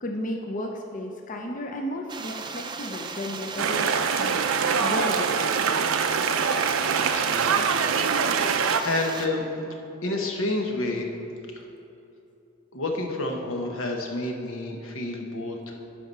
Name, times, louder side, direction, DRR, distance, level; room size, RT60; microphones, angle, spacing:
voice 1, 0.0-4.4 4.8-5.6 5.9-6.2, left 1 dB, 40° left, 2 dB, 0.6 m, -34 dB
sound 1, 2.1-9.3, right 4 dB, 20° right, 0.4 m, -36 dB
sound 2, 3.6-8.8, right 6 dB, 85° right, 0.5 m, -24 dB
voice 2, 6.9-8.3 8.8-9.5 10.0-11.1 11.5-11.6 12.7-15.8, left 2 dB, 85° left, 2 dB, 1.2 m, -30 dB
11.5 x 4.8 x 5.5 m, 2.8 s
head